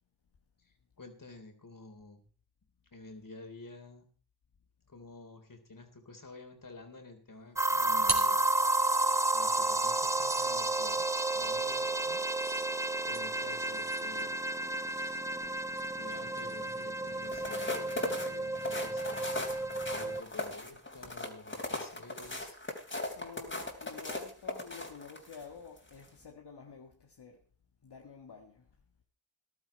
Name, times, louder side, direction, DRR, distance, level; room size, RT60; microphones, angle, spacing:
voice 1, 0.6-2.3 2.9-4.1 4.9-8.5 9.3-11.1 11.3-12.6 13.0-14.3 16.0-19.2 19.5-22.6, left 3 dB, 50° left, 3.6 m, -50 dB
sound 1, 7.4-9.2 9.8-17.4, right 3 dB, 40° right, 3.6 m, -44 dB
sound 2, 7.6-20.2, right 2 dB, 5° right, 0.6 m, -31 dB
sound 3, 17.2-25.4 25.9-26.1, left 2 dB, 30° left, 3.3 m, -38 dB
voice 2, 23.1-27.4 27.8-28.7, left 5 dB, 65° left, 1.7 m, -49 dB
14.0 x 12.0 x 4.4 m
cardioid pair, 50°, 42 cm